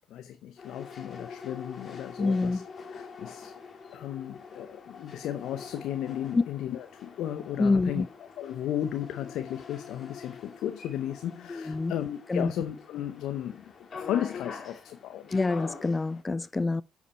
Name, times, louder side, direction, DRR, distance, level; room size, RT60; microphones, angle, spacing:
voice 1, 0.1-2.6 2.9-3.5 3.9-8.0 8.4-15.4, left 11 dB, 75° left, 0.7 m, -35 dB
sound 1, 0.6-16.2, left 5 dB, 45° left, 2.5 m, -45 dB
voice 2, 2.2-2.6 6.3-6.4 7.6-8.1 11.5-11.9 12.3-12.5 15.3-16.8, left 3 dB, 25° left, 0.4 m, -26 dB
7.3 x 7.2 x 4.3 m
supercardioid pair, 60°, 0 cm